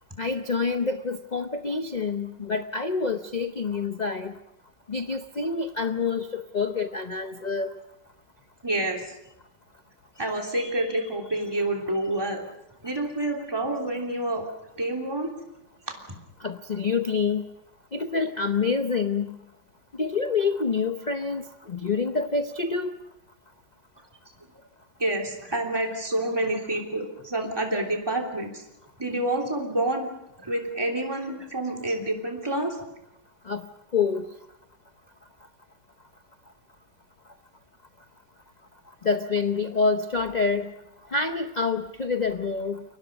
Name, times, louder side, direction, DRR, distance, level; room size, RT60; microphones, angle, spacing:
voice 1, 0.2-4.3 4.9-7.8 16.4-17.5 17.9-19.4 19.9-22.9 33.4-33.7 33.9-34.3 39.0-40.7 41.1-42.8, left 4 dB, 35° left, 8 dB, 0.7 m, -27 dB
voice 2, 8.6-9.1 10.2-12.4 12.8-14.4 14.7-15.3 16.1-16.2 25.0-28.6 29.0-30.1 30.4-32.8, right 1 dB, 10° right, 1 dB, 3.2 m, -28 dB
29.5 x 24.0 x 5.3 m, 0.84 s
omnidirectional pair, 2.0 m